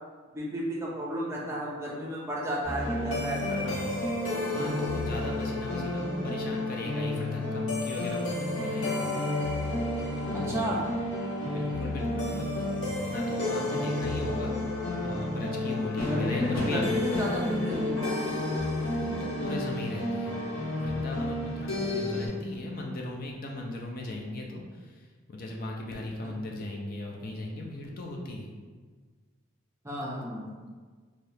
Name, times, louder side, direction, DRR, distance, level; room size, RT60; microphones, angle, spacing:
voice 1, 0.3-3.9 10.3-10.8 16.0-18.2 26.2-26.3 29.8-30.6, equal, 15° right, -4 dB, 0.5 m, -32 dB
sound 1, 2.6-22.3, left 2 dB, 75° left, 1.0 m, -31 dB
voice 2, 3.6-9.1 10.2-10.8 11.5-12.5 13.1-14.6 15.0-16.8 19.0-20.4 20.8-28.5, left 2 dB, 45° left, 0 dB, 0.4 m, -38 dB
2.7 x 2.7 x 3.3 m, 1.5 s
head